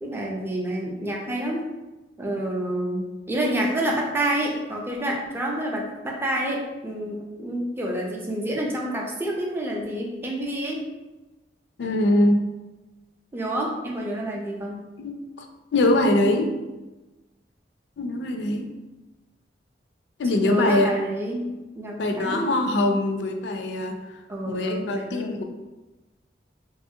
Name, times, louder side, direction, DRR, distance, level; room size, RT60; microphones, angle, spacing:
voice 1, 0.0-1.6 2.2-10.8 13.3-14.8 20.4-22.5 24.3-25.4, right 1 dB, 15° right, -2 dB, 0.4 m, -28 dB
voice 2, 11.8-12.4 15.0-15.5 15.7-16.5 18.0-18.6 20.2-20.9 22.0-24.0 24.4-25.4, left 1 dB, 75° left, 4 dB, 0.4 m, -22 dB
2.9 x 2.3 x 2.7 m, 1.1 s
head